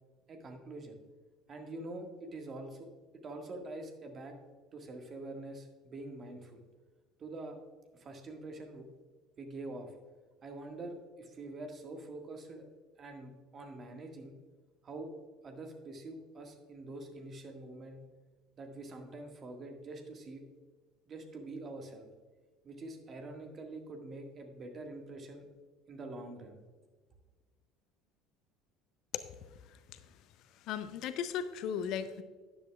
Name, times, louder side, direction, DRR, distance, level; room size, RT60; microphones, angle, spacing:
voice 1, 0.3-1.0 1.5-2.9 3.1-4.4 4.7-6.6 7.2-7.6 7.9-8.9 9.4-9.9 10.4-12.7 13.0-14.4 14.8-15.1 15.4-18.0 18.6-20.4 21.1-22.1 22.6-25.5 25.9-26.6, right 2 dB, 35° right, 4 dB, 1.8 m, -45 dB
voice 2, 30.7-32.2, left 8 dB, 50° left, 12 dB, 0.6 m, -36 dB
12.5 x 10.5 x 2.4 m, 1.4 s
figure-of-eight pair, 60°, 0 cm